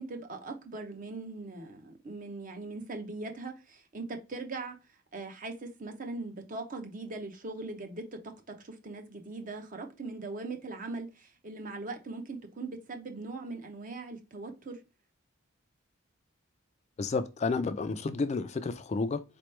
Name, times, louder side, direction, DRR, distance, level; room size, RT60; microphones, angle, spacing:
voice 1, 0.0-4.8 5.1-8.0 8.6-14.8, right 3 dB, 40° right, 0.7 m, -40 dB
voice 2, 17.0-19.2, left 4 dB, 30° left, 0.3 m, -31 dB
4.2 x 3.0 x 3.1 m
head